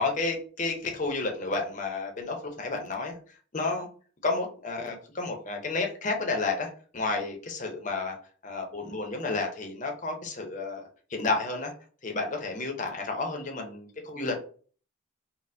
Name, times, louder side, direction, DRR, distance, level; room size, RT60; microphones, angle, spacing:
voice 1, 0.0-3.2 3.5-3.9 4.2-8.2 8.4-10.8 11.1-11.7 12.0-14.4, left 3 dB, 35° left, 3 dB, 0.6 m, -31 dB
4.1 x 2.0 x 2.6 m, 0.43 s
head